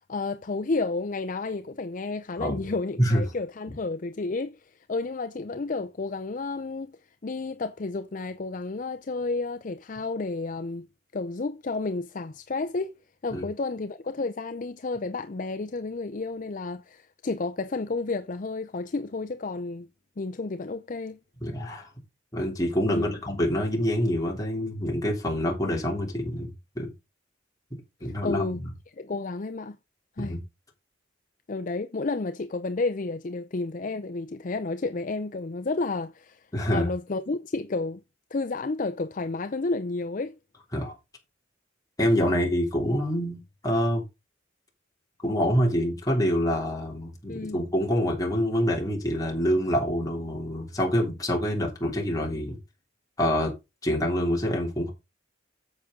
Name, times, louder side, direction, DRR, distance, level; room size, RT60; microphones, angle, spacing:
voice 1, 0.1-10.9 11.1-12.9 13.2-19.9 20.2-21.2 22.9-23.2 28.0-28.6 29.0-29.8 30.2-30.4 31.5-38.0 38.3-40.3 47.3-47.6, left 3 dB, 40° left, 0.5 m, -31 dB
voice 2, 21.4-21.9 22.3-26.9 28.0-28.6 30.2-30.4 36.5-36.9 40.7-41.0 42.0-43.4 43.6-44.0 45.2-52.6 53.2-53.5 53.8-54.9, equal, 20° left, 3.0 m, -26 dB
9.6 x 7.3 x 3.7 m
head